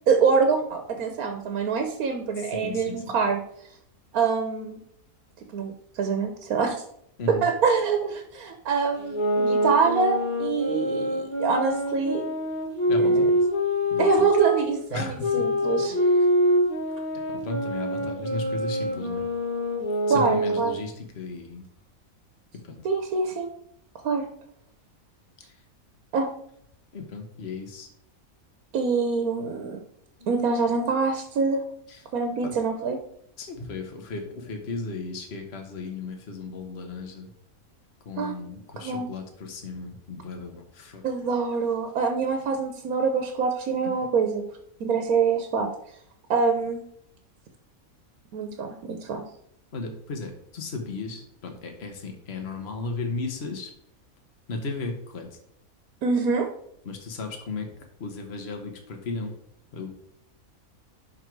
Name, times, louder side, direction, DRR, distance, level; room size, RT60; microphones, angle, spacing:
voice 1, 0.1-3.4 4.1-4.8 5.5-6.8 7.3-12.2 13.0-13.3 14.0-15.9 20.1-20.7 22.8-23.5 24.0-24.2 26.1-26.3 28.7-29.8 30.3-31.6 32.1-33.0 38.2-38.3 38.8-39.1 41.0-44.4 44.8-45.7 46.3-46.8 48.3-49.2 56.0-56.5, right 5 dB, 85° right, 5 dB, 1.3 m, -25 dB
voice 2, 2.4-3.0 7.2-7.5 12.9-13.4 13.9-14.3 14.9-15.5 15.9-16.0 17.3-19.2 20.1-21.6 22.7-22.8 26.9-27.9 32.4-32.6 33.4-37.3 38.0-41.0 49.7-53.7 54.5-55.2 56.8-57.7 58.0-59.3 59.7-59.9, left 3 dB, 50° left, 3 dB, 1.4 m, -35 dB
sound 1, 9.0-14.6 15.2-20.8, equal, 35° left, 1.9 m, -25 dB
11.0 x 3.9 x 4.6 m, 0.70 s
omnidirectional pair, 1.5 m